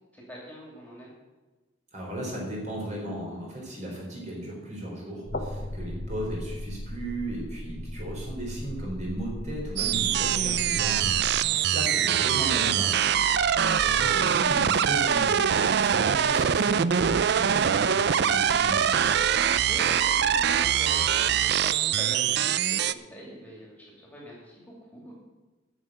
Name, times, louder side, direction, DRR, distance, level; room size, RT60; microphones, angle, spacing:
voice 1, 0.1-1.1 10.2-10.4 11.4-11.7 13.2-13.7 19.4-24.5 24.9-25.1, right 1 dB, 10° left, -3 dB, 2.7 m, -43 dB
voice 2, 1.9-13.2 13.8-19.0, right 1 dB, 40° right, -2 dB, 4.0 m, -36 dB
sound 1, 5.3-11.4, left 1 dB, 45° left, 1.2 m, -36 dB
sound 2, 9.8-22.9, right 8 dB, 55° right, 0.4 m, -23 dB
10.5 x 6.5 x 8.9 m, 1.2 s
head